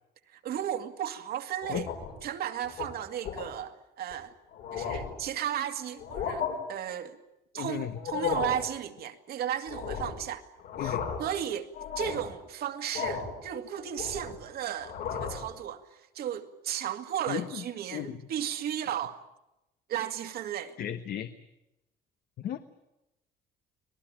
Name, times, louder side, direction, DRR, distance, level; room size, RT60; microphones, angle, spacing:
voice 1, 0.3-1.9 2.2-4.3 4.7-7.2 7.5-10.4 10.8-19.2 19.9-20.8, right 10 dB, 65° right, 2.3 m, -35 dB
sound 1, 1.6-2.2 2.6-2.9 3.2-3.5 4.1-4.2 4.5-5.2 6.0-6.5 7.9-8.6 9.7-10.2 10.6-11.3 11.7-12.3 12.9-13.4 13.7-14.4 14.8-15.5, left 7 dB, 80° left, 7.4 m, -34 dB
voice 2, 7.5-7.9 10.8-11.0 17.3-17.6 17.9-18.2 20.8-21.3 22.4-22.7, left 11 dB, 65° left, 1.3 m, -35 dB
25.5 x 19.0 x 9.0 m
cardioid pair, 110°, 17 cm